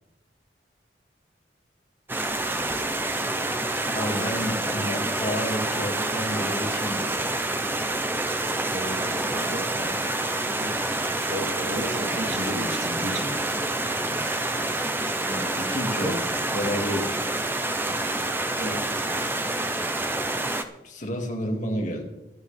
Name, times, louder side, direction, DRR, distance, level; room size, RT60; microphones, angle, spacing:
Stream, 2.1-20.6, right 2 dB, 10° right, 0.7 m, -27 dB
voice 1, 3.9-7.2 15.3-16.2 16.5-17.4 20.8-22.0, equal, 45° left, 1 dB, 2.3 m, -30 dB
voice 2, 8.7-9.9 10.6-10.9 11.2-13.3 14.1-14.2 16.0-16.1 18.5-18.9, right 1 dB, 75° right, -1 dB, 3.4 m, -33 dB
23.0 x 9.5 x 3.5 m, 0.95 s
head